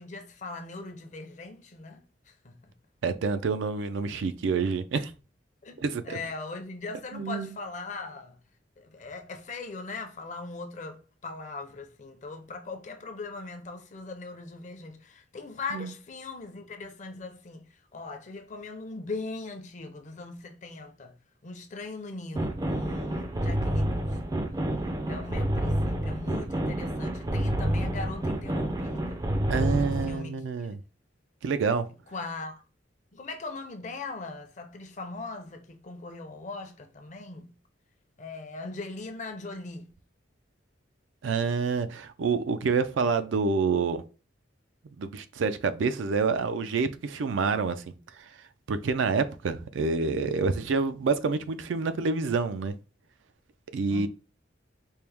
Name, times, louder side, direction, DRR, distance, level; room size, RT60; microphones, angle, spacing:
voice 1, 0.0-2.6 5.6-8.4 8.8-21.1 21.4-24.3 25.1-29.2 29.6-30.4 32.1-32.6 33.1-37.5 38.2-39.9 53.9-54.1, left 3 dB, 40° left, 0.5 m, -40 dB
voice 2, 3.0-5.1 5.8-6.2 7.1-7.5 15.7-15.9 29.5-30.8 31.4-31.8 41.2-44.0 45.0-48.3 48.7-52.7 53.7-54.1, right 4 dB, 85° right, 0.4 m, -27 dB
sound 1, 22.3-30.2, right 1 dB, 20° right, 0.4 m, -29 dB
4.4 x 2.0 x 3.4 m
head